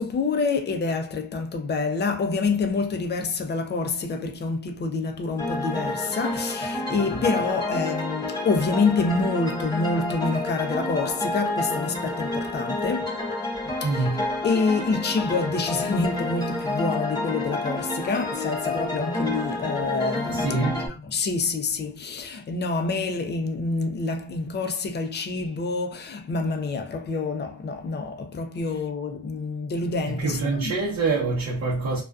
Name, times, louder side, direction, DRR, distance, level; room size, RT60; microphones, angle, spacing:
voice 1, 0.0-13.2 13.6-14.1 14.4-20.7 21.1-30.7, left 4 dB, 35° left, 0.5 m, -27 dB
sound 1, 5.4-20.9, left 2 dB, 15° left, 0.8 m, -29 dB
voice 2, 6.9-7.3 13.8-14.4 20.2-20.9 28.7-28.8 30.0-32.0, right 3 dB, 65° right, 0.8 m, -26 dB
2.3 x 2.3 x 2.3 m
cardioid pair, 90°, 29 cm